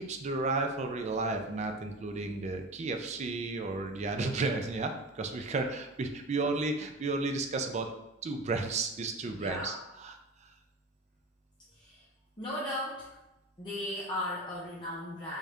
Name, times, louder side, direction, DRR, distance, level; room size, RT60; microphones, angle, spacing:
voice 1, 0.0-7.9 8.2-10.1, right 3 dB, 35° right, 5 dB, 0.4 m, -33 dB
voice 2, 9.2-9.8 11.7-12.0 12.4-13.1 13.6-15.4, left 1 dB, 25° left, -8 dB, 0.7 m, -37 dB
3.6 x 2.7 x 3.3 m, 0.92 s
head